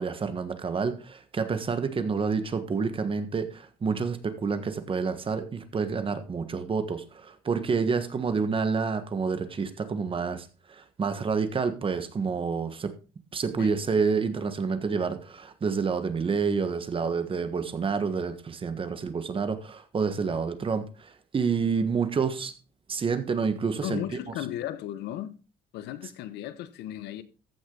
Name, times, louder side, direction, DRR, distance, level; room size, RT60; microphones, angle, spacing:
voice 1, 0.0-12.9 13.3-22.5 22.9-24.0, right 5 dB, 30° right, 1.4 m, -28 dB
voice 2, 23.8-25.3 25.7-27.2, left 12 dB, 85° left, 1.0 m, -35 dB
14.5 x 6.3 x 3.9 m
cardioid pair, 110°, 17 cm